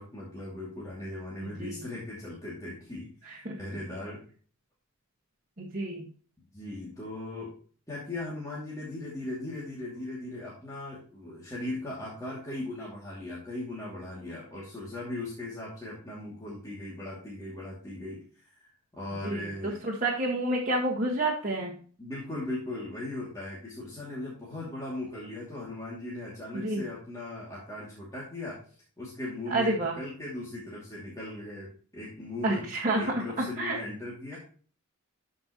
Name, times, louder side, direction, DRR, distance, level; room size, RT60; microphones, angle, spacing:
voice 1, 0.0-4.3 6.5-7.5 7.9-19.8 22.0-32.7 32.9-34.4, left 2 dB, 15° left, -7 dB, 2.5 m, -38 dB
voice 2, 1.4-1.8 3.3-3.5 5.6-6.1 19.2-21.7 26.5-26.8 29.5-29.9 32.4-33.8, right 2 dB, 35° right, -5 dB, 1.7 m, -29 dB
13.0 x 5.4 x 3.0 m, 0.42 s
head